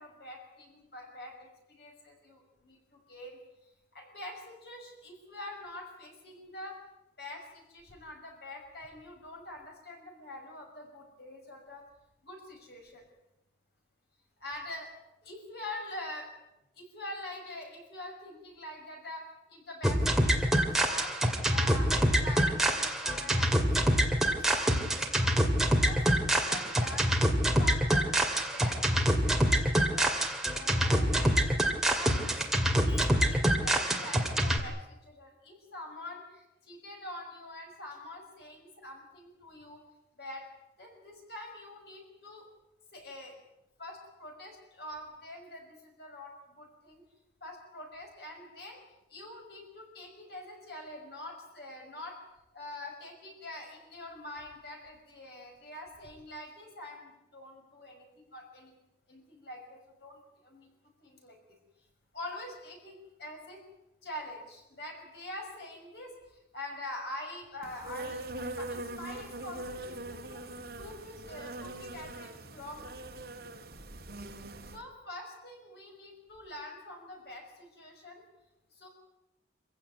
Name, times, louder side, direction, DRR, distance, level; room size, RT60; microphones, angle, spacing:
voice 1, 0.0-6.8 7.2-11.8 12.2-13.0 14.4-14.9 15.2-16.3 16.8-21.2 21.5-24.0 24.3-27.1 27.6-30.2 30.5-31.4 31.7-39.8 40.2-40.5 40.8-42.4 42.9-43.4 43.8-47.0 47.4-48.8 49.1-52.2 52.5-58.7 59.1-60.7 61.0-61.4 62.1-63.6 64.0-70.4 70.8-73.0 74.7-78.2 78.7-78.9, left 1 dB, 60° left, 2 dB, 5.8 m, -45 dB
sound 1, 19.8-34.6, equal, ahead, 2.3 m, -26 dB
Insect, 67.6-74.8, right 1 dB, 50° right, 2.4 m, -42 dB
26.5 x 16.5 x 9.5 m, 0.92 s
head